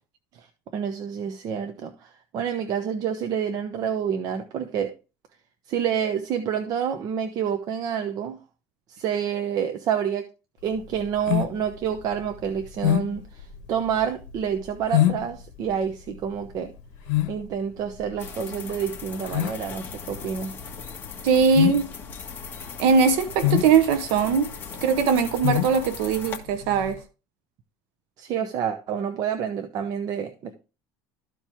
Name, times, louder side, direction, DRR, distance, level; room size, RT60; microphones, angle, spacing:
voice 1, 0.7-4.9 5.7-8.4 8.9-10.3 10.6-16.7 17.3-20.5 28.2-30.5, right 8 dB, 45° right, 0.9 m, -28 dB
sound 1, 10.7-27.0, left 13 dB, 80° left, 0.9 m, -28 dB
sound 2, 18.2-26.4, left 5 dB, 20° left, 1.8 m, -39 dB
voice 2, 21.2-21.9 22.8-24.5 24.8-27.0, right 5 dB, 75° right, 0.9 m, -20 dB
13.5 x 4.6 x 3.5 m
cardioid pair, 150°, 9 cm